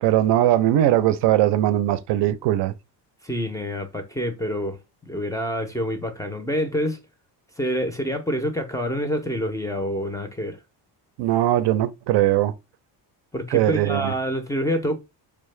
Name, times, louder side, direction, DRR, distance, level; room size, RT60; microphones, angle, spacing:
voice 1, 0.0-2.7 11.2-12.5 13.5-14.1, right 13 dB, 75° right, 0.6 m, -20 dB
voice 2, 3.2-4.8 5.0-7.0 7.6-10.6 13.3-15.0, equal, 10° left, 0.4 m, -27 dB
4.6 x 2.1 x 3.1 m
cardioid pair, 130°, 42 cm